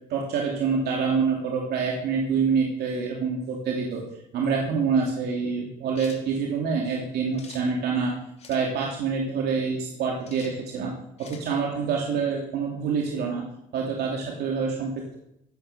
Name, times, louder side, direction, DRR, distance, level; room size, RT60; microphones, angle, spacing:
voice 1, 0.1-4.0 4.3-8.1 8.5-10.9 11.2-13.4 13.7-15.2, right 5 dB, 70° right, -1 dB, 2.9 m, -26 dB
sound 1, 5.9-6.2 7.3-7.6 8.4-8.6 10.3-10.5 11.2-11.5, left 5 dB, 40° left, 3.0 m, -46 dB
15.5 x 9.3 x 6.9 m, 0.79 s
cardioid pair, 110°, 17 cm